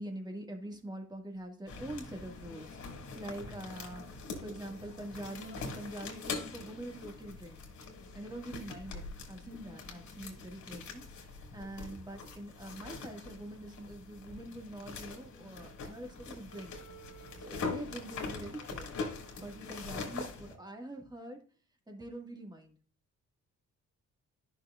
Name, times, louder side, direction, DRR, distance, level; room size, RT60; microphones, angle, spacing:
voice 1, 0.0-2.8 3.2-7.6 8.1-16.7 17.4-18.9 19.4-21.4 21.9-22.8, right 1 dB, 15° right, 2 dB, 2.0 m, -44 dB
sound 1, 1.7-20.5, left 4 dB, 70° left, 2.5 m, -43 dB
11.0 x 6.3 x 2.5 m, 0.42 s
cardioid pair, 90°, 30 cm